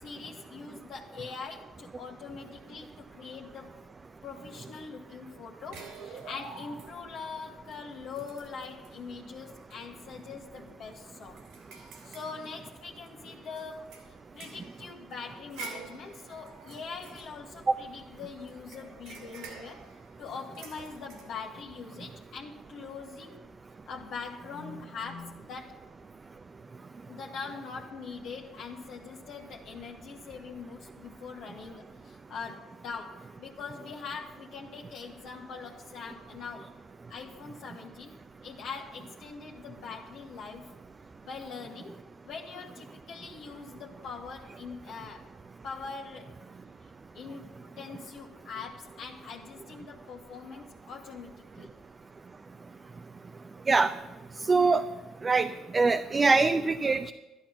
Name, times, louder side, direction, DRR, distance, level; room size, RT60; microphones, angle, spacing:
voice 1, 0.0-3.7 4.2-11.4 12.0-19.8 20.2-23.5 23.9-25.8 27.1-36.7 37.1-38.2 38.4-40.8 41.2-45.3 45.6-46.4 46.8-51.7, left 5 dB, 65° left, -2 dB, 1.4 m, -43 dB
sound 1, 5.7-7.2 7.7-7.8 8.1-9.0 9.5-9.7 10.1-10.2 10.7-13.1 13.6-18.0 18.5-21.3, right 3 dB, 80° right, 3.3 m, -48 dB
voice 2, 54.5-54.8 55.2-57.1, right 4 dB, 35° right, 7 dB, 0.6 m, -23 dB
11.5 x 11.0 x 5.7 m, 1.1 s
supercardioid pair, 65°, 0 cm